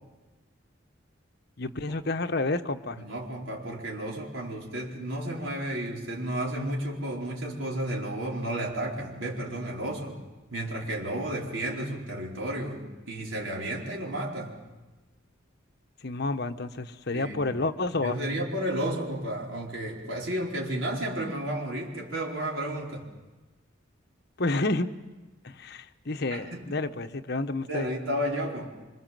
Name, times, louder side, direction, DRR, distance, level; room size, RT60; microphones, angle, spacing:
voice 1, 1.6-3.0 16.0-18.2 24.4-24.9 25.4-27.9, left 2 dB, 55° left, 8 dB, 1.1 m, -30 dB
voice 2, 3.0-10.2 10.5-14.5 17.1-17.4 18.0-23.1 26.3-26.7 27.7-28.7, right 1 dB, 90° right, -2 dB, 4.7 m, -32 dB
25.5 x 25.0 x 7.7 m, 1.2 s
head